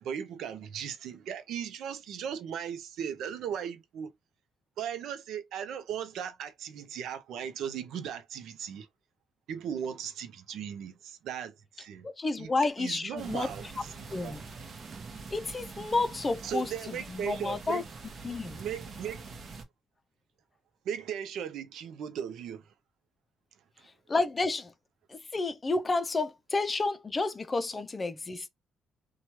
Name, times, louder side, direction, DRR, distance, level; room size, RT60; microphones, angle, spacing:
voice 1, 0.0-4.1 4.8-8.9 9.5-12.1 12.4-12.5 12.8-13.9 14.2-14.3 16.4-17.8 18.6-19.3 20.8-22.6 23.8-23.9, right 8 dB, 80° right, 0.5 m, -37 dB
voice 2, 12.0-13.5 14.1-14.4 15.3-17.8 18.2-18.6 24.1-24.7 25.1-28.5, left 3 dB, 30° left, 0.4 m, -30 dB
sound 1, 13.2-19.6, right 4 dB, 50° right, 0.9 m, -45 dB
3.0 x 2.3 x 2.8 m
cardioid pair, 90°, 0 cm